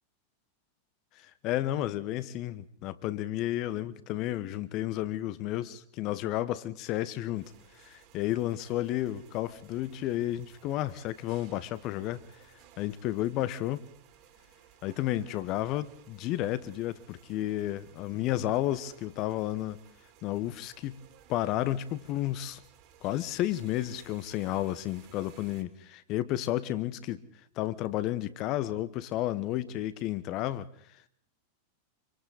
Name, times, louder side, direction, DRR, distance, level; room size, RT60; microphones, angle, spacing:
voice 1, 1.2-7.5 7.8-12.2 12.8-13.8 14.8-19.8 20.2-21.0 21.3-22.6 23.0-27.2 27.6-30.7, left 14 dB, 40° left, 1.2 m, -32 dB
sound 1, 7.3-25.6, right 9 dB, 40° right, 3.4 m, -58 dB
27.0 x 24.5 x 4.2 m
figure-of-eight pair, 90°, 0 cm